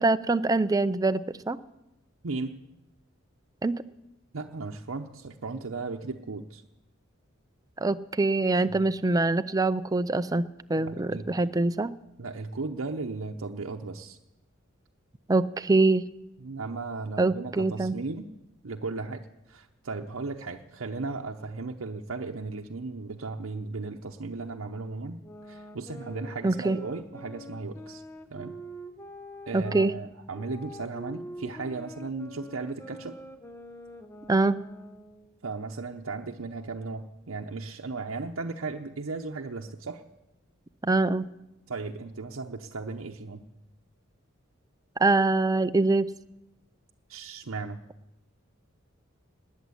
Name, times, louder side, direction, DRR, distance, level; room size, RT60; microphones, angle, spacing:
voice 1, 0.0-1.6 3.6-3.8 7.8-11.9 15.3-16.1 17.2-18.0 26.4-26.8 29.5-29.9 34.3-34.6 40.8-41.3 45.0-46.1, right 2 dB, 20° right, 12 dB, 0.5 m, -24 dB
voice 2, 2.2-2.6 4.3-6.6 8.6-8.8 10.8-11.5 12.2-14.2 16.4-18.3 18.6-25.2 25.5-28.0 28.3-28.5 29.5-33.2 35.4-40.0 41.7-43.4 47.1-47.8, right 3 dB, 90° right, 2 dB, 0.8 m, -36 dB
sound 1, 25.2-29.9 30.3-35.3, equal, 15° left, 0.9 m, -45 dB
19.5 x 7.4 x 9.6 m, 0.93 s
head